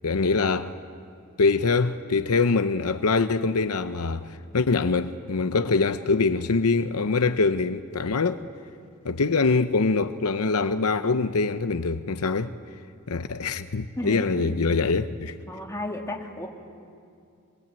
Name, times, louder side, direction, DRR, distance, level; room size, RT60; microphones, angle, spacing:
voice 1, 0.0-0.7 1.4-8.4 9.0-12.5 13.1-15.3, left 4 dB, 75° left, 0.8 m, -24 dB
voice 2, 14.0-14.4 15.5-16.5, left 1 dB, 15° left, 2.9 m, -33 dB
25.5 x 22.5 x 9.0 m
head